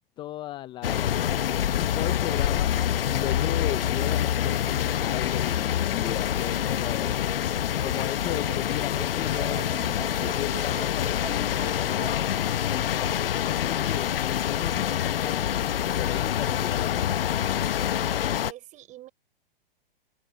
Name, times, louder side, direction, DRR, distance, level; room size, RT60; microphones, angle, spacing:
voice 1, 0.2-1.3 1.7-7.3 7.8-12.4 12.6-17.1, left 14 dB, 15° left, 0.6 m, -36 dB
sound 1, 0.8-18.5, left 10 dB, 70° left, 1.0 m, -26 dB
Dog, 2.5-5.5 6.2-6.3 6.6-6.7 6.9-13.3, right 8 dB, 80° right, 3.1 m, -45 dB
voice 2, 12.9-13.3 18.4-19.1, right 15 dB, 25° right, 4.0 m, -46 dB
hypercardioid pair, 135°, 29 cm